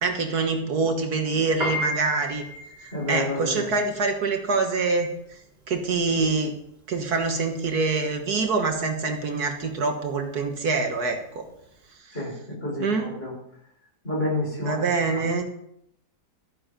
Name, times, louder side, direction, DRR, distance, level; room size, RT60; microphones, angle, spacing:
voice 1, 0.0-2.4 2.8-5.4 5.7-6.5 6.9-11.5 12.1-12.2 12.8-13.1 14.6-15.4, right 4 dB, 65° right, 4 dB, 1.9 m, -25 dB
Piano, 1.5-11.9, left 1 dB, 35° right, 3.4 m, -35 dB
voice 2, 2.9-3.7 12.1-12.3 12.6-12.9 13.2-13.3 14.0-14.8, left 2 dB, 35° left, -4 dB, 6.0 m, -28 dB
13.5 x 9.6 x 5.2 m, 0.75 s
omnidirectional pair, 1.8 m